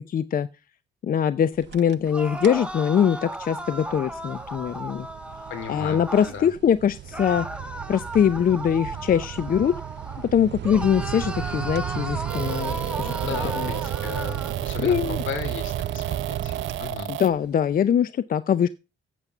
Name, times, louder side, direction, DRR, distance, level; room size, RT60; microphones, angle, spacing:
voice 1, 0.1-0.5 1.0-5.1 5.7-7.5 7.9-9.7 10.2-13.7 14.8-15.2 17.1-18.7, left 8 dB, 45° left, 16 dB, 0.6 m, -23 dB
sound 1, 1.5-2.1 2.4-2.7 3.2-17.4, right 12 dB, 60° right, 0.6 m, -34 dB
sound 2, 2.0-6.4 7.1-10.3 10.6-14.6, right 1 dB, 5° right, 1.6 m, -35 dB
voice 2, 5.5-6.0 6.3-6.5 12.3-12.7 13.0-15.0 15.3-17.1, left 7 dB, 75° left, 8 dB, 2.7 m, -36 dB
sound 3, 12.3-17.3, right 12 dB, 80° right, 1.0 m, -34 dB
8.3 x 7.4 x 6.6 m, 0.28 s
cardioid pair, 90°, 20 cm